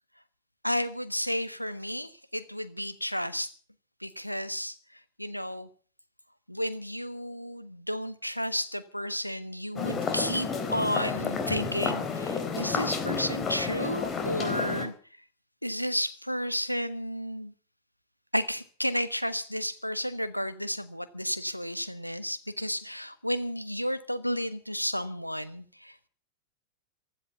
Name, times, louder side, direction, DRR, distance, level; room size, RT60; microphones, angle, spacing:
voice 1, 0.6-3.5 4.0-4.7 5.2-5.7 6.5-14.9 15.6-17.5 18.3-26.1, equal, 90° left, 14 dB, 1.2 m, -32 dB
sound 1, 9.8-14.9, left 5 dB, 25° left, 3.9 m, -31 dB
15.5 x 13.5 x 6.9 m, 0.42 s
figure-of-eight pair, 90°, 0 cm